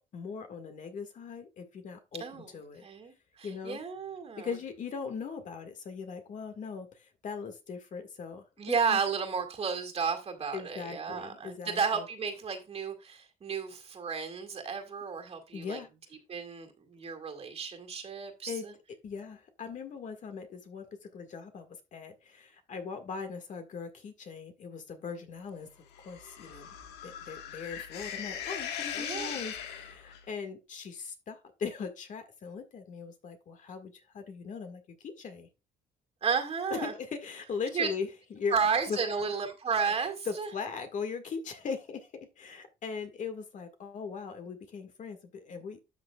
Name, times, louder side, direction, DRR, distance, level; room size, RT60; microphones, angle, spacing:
voice 1, 0.1-2.9 3.4-3.8 4.4-9.0 10.5-12.1 15.5-15.9 18.5-18.7 19.0-25.7 26.0-26.7 27.0-35.5 36.7-38.6 38.9-39.0 40.3-45.8, left 5 dB, 50° left, 1.8 m, -39 dB
voice 2, 2.8-4.5 8.6-15.8 16.3-18.7 28.9-29.4 36.2-36.9 37.7-37.9 38.5-40.5, right 6 dB, 35° right, 2.1 m, -33 dB
sound 1, 25.9-30.2, left 8 dB, 85° left, 1.5 m, -39 dB
12.5 x 6.2 x 2.3 m
cardioid pair, 110°, 17 cm